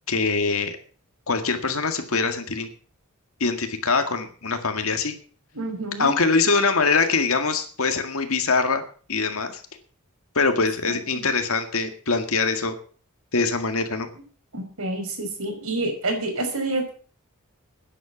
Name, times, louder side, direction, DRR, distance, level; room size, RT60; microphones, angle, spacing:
voice 1, 0.1-0.8 1.3-2.7 3.4-5.1 6.0-8.8 9.1-9.6 10.4-12.7 13.3-14.1, left 4 dB, 65° left, 6 dB, 1.9 m, -23 dB
voice 2, 5.5-6.1 10.8-11.3 14.5-16.9, right 2 dB, 70° right, 4 dB, 5.5 m, -28 dB
12.5 x 10.0 x 7.3 m, 0.42 s
head